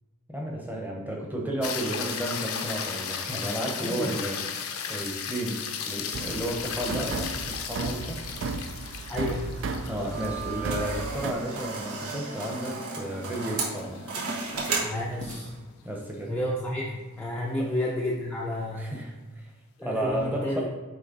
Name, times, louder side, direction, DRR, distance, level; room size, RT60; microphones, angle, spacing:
voice 1, 0.3-8.6 9.9-14.0 15.8-16.4 17.6-17.7 18.8-19.4 19.8-20.7, right 1 dB, 10° right, -1 dB, 0.9 m, -33 dB
sound 1, 1.6-14.0 18.5-18.6, left 7 dB, 75° left, 0.6 m, -36 dB
voice 2, 3.8-4.1 9.1-9.6 14.8-15.5 16.3-18.9 19.8-20.7, left 1 dB, 5° left, -4 dB, 0.4 m, -31 dB
sound 2, 6.1-11.3, right 4 dB, 55° right, 0.3 m, -34 dB
sound 3, 10.1-15.6, right 3 dB, 85° right, 1.3 m, -34 dB
8.1 x 3.2 x 3.9 m, 1.2 s
head